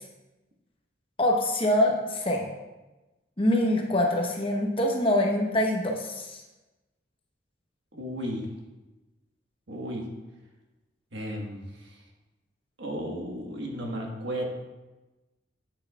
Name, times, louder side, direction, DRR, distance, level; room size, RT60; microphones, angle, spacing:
voice 1, 1.2-2.5 3.4-6.4, left 1 dB, 30° left, 1 dB, 0.9 m, -24 dB
voice 2, 7.9-8.5 9.7-10.0 11.1-11.6 12.8-14.4, equal, 65° right, 0 dB, 1.5 m, -34 dB
10.5 x 8.1 x 2.4 m, 1.1 s
head